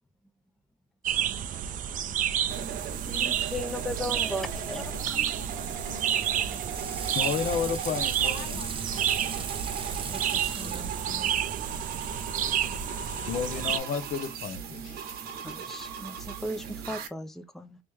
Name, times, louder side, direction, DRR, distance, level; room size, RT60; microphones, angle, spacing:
sound 1, 1.0-13.8, right 9 dB, 55° right, 0.4 m, -30 dB
sound 2, 2.5-17.1, right 7 dB, 70° right, 1.0 m, -38 dB
voice 1, 3.1-4.9 10.1-11.3 15.4-17.8, left 1 dB, ahead, 0.4 m, -37 dB
voice 2, 4.8-6.6 8.2-9.0, left 7 dB, 80° left, 0.9 m, -46 dB
Water / Sink (filling or washing), 6.1-11.5, right 5 dB, 30° right, 0.8 m, -39 dB
voice 3, 7.1-8.6 13.3-15.0, left 7 dB, 55° left, 0.6 m, -31 dB
3.0 x 3.0 x 3.4 m
cardioid pair, 110°, 17 cm